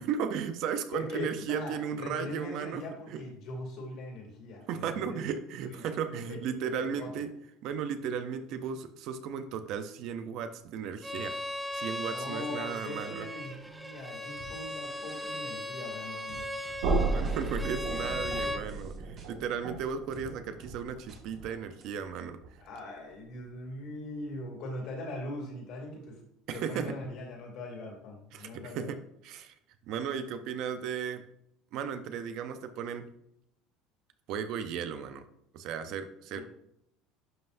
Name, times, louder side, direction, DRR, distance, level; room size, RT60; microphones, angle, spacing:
voice 1, 0.0-2.8 3.1-3.2 4.7-7.3 7.6-11.4 11.7-13.3 17.1-22.4 26.5-26.9 28.3-29.5 29.9-31.2 31.7-33.1 34.3-35.2 35.5-36.4, right 7 dB, 45° right, 9 dB, 0.6 m, -35 dB
voice 2, 0.9-5.3 5.6-5.8 6.1-6.4 6.8-7.2 12.0-16.5 17.4-17.5 22.6-26.2 26.5-28.9 36.3-36.4, left 1 dB, 45° left, 0 dB, 2.5 m, -41 dB
Bowed string instrument, 11.0-18.6, left 1 dB, 5° right, 0.5 m, -38 dB
sound 1, 14.4-14.5 15.1-15.4 16.3-16.8 17.2-17.4 18.0-18.4 18.7-19.3 20.1-20.3 20.6-20.7 21.1-21.5 21.8-21.9, right 2 dB, 30° right, 1.7 m, -51 dB
sound 2, 16.8-22.7, right 3 dB, 85° right, 1.8 m, -34 dB
11.0 x 5.6 x 2.6 m, 0.75 s
cardioid pair, 180°, 0 cm